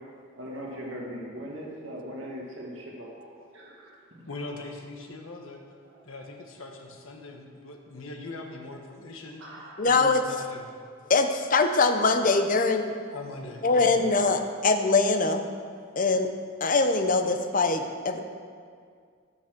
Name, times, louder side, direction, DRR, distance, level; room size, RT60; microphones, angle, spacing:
voice 1, 0.3-4.3 9.4-9.9, equal, 65° right, -3 dB, 2.1 m, -40 dB
voice 2, 4.3-5.6 6.0-9.4 9.8-10.7 13.1-14.1, left 2 dB, 85° left, 2 dB, 1.5 m, -41 dB
voice 3, 9.8-10.2 11.1-12.9 13.6-15.5 16.0-16.3 16.6-18.2, left 3 dB, 40° left, 6 dB, 0.8 m, -23 dB
13.5 x 6.2 x 6.7 m, 2.1 s
head